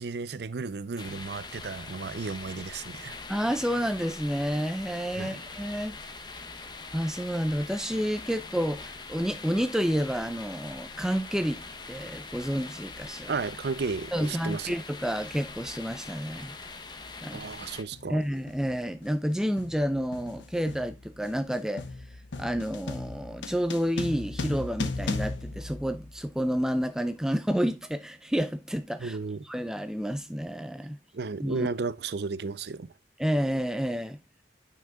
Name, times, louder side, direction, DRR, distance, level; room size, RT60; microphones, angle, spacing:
voice 1, 0.0-3.2 5.2-5.4 13.3-14.7 17.3-18.2 29.0-29.5 31.1-32.9, right 4 dB, 60° right, 0.5 m, -33 dB
sound 1, 1.0-17.8, left 3 dB, 25° left, 0.8 m, -43 dB
voice 2, 3.3-6.0 6.9-11.6 11.9-13.3 14.1-16.6 17.2-17.4 18.1-21.8 22.4-29.2 29.5-31.0 31.4-31.7 33.2-34.2, equal, 5° right, 0.4 m, -30 dB
sound 2, 16.3-16.4 17.4-17.6 17.9-26.5, left 3 dB, 80° left, 0.9 m, -37 dB
9.2 x 5.7 x 2.2 m
head